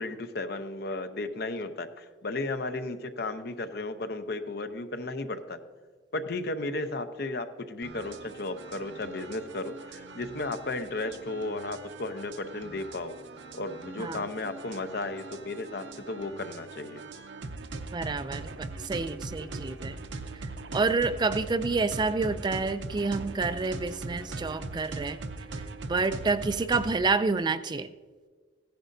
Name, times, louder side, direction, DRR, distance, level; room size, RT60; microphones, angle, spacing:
voice 1, 0.0-5.6 6.1-13.2 13.5-17.0, left 2 dB, 60° left, 8 dB, 0.7 m, -34 dB
sound 1, 7.8-27.0, right 2 dB, 85° right, 0.7 m, -41 dB
voice 2, 17.9-20.0 20.7-25.2 25.9-27.9, right 4 dB, 25° right, 12 dB, 0.3 m, -28 dB
15.0 x 10.5 x 2.6 m, 1.5 s
head